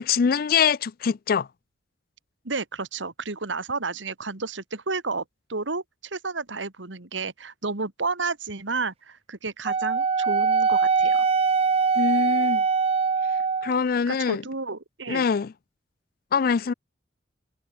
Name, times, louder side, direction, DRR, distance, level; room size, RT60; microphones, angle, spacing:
voice 1, 0.0-1.5 12.0-12.6 13.6-14.4 15.1-15.5 16.3-16.7, left 6 dB, 50° left, 0.4 m, -23 dB
voice 2, 2.4-5.2 5.5-11.3 14.1-15.3, right 4 dB, 85° right, 2.0 m, -31 dB
Wind instrument woodwind instrument, 9.7-13.8, right 5 dB, 30° right, 0.4 m, -22 dB
head